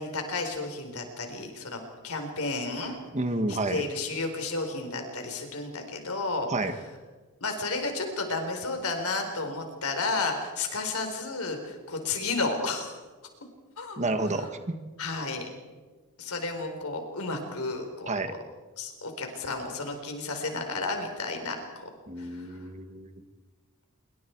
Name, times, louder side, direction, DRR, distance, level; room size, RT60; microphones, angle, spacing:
voice 1, 0.0-3.0 3.5-6.5 7.4-12.9 13.8-14.0 15.0-15.5 16.2-18.4 18.8-21.9 22.2-22.5, left 3 dB, 70° left, 4 dB, 4.4 m, -32 dB
voice 2, 3.1-3.8 6.5-6.7 14.0-14.8 18.1-18.3 22.1-23.2, right 2 dB, 30° right, 8 dB, 1.6 m, -30 dB
26.5 x 24.0 x 4.7 m, 1.3 s
head